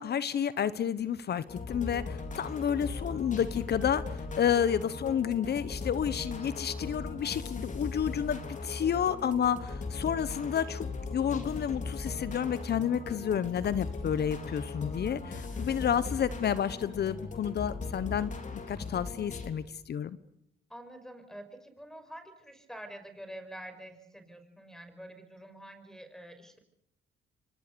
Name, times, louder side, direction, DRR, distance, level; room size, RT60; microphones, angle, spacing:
voice 1, 0.0-18.3 18.7-20.2, left 8 dB, 55° left, 16 dB, 1.1 m, -30 dB
sound 1, 1.5-19.5, left 3 dB, 40° left, 3.9 m, -38 dB
sound 2, 11.3-14.9 15.2-15.3 15.7-16.2, left 7 dB, 85° left, 4.1 m, -58 dB
voice 2, 15.5-15.9 20.7-26.6, right 1 dB, ahead, 9 dB, 5.5 m, -47 dB
28.0 x 24.5 x 6.9 m, 0.77 s
cardioid pair, 90°, 20 cm